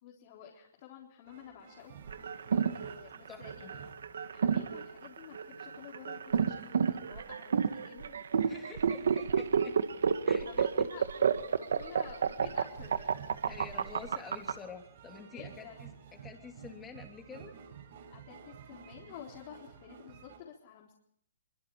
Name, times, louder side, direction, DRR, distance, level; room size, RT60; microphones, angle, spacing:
voice 1, 0.0-1.9 2.7-3.8 4.2-8.2 10.5-11.0 11.5-13.1 15.3-15.8 18.1-21.0, left 9 dB, 35° left, -2 dB, 4.0 m, -51 dB
sound 1, 1.3-4.4 4.9-5.1 5.4-20.4, right 8 dB, 45° right, 5.2 m, -53 dB
sound 2, 2.1-14.5, right 6 dB, 75° right, 1.8 m, -30 dB
voice 2, 3.3-3.7 8.4-9.8 10.3-10.7 13.5-17.5, left 5 dB, 10° left, 3 dB, 3.0 m, -48 dB
24.5 x 24.0 x 4.8 m, 0.71 s
hypercardioid pair, 165°, 0 cm